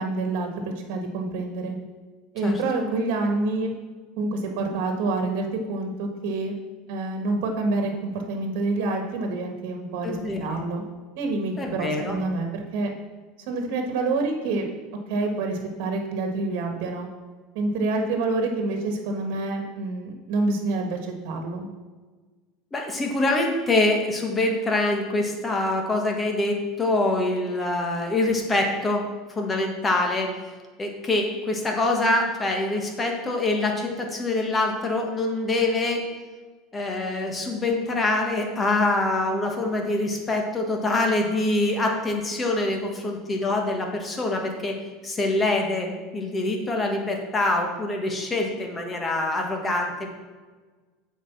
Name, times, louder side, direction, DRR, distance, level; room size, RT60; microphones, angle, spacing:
voice 1, 0.0-1.7 2.3-3.7 4.2-6.5 6.9-10.8 11.1-12.9 13.5-14.6 15.1-17.1 17.5-21.7, right 3 dB, 70° right, 4 dB, 1.5 m, -27 dB
voice 2, 2.4-2.9 10.0-10.6 11.6-12.2 22.7-30.3 30.8-36.0 36.7-44.8 45.0-50.1, left 2 dB, 20° left, 2 dB, 1.5 m, -25 dB
7.8 x 4.9 x 7.1 m, 1.4 s
supercardioid pair, 140°, 0 cm